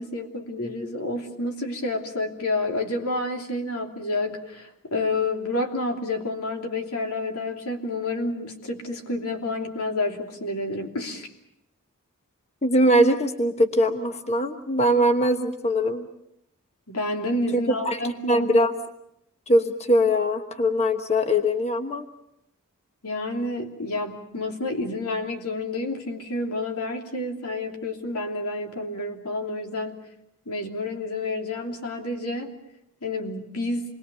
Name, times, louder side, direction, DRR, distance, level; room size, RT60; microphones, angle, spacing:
voice 1, 0.0-11.3 16.9-18.5 23.0-30.0 30.5-32.5 33.0-33.8, left 2 dB, 90° left, 3 dB, 3.1 m, -29 dB
voice 2, 12.6-16.1 17.5-17.6 17.8-18.0 18.3-18.7 19.5-22.1, equal, 30° left, 7 dB, 1.2 m, -21 dB
28.0 x 21.0 x 6.9 m, 0.80 s
head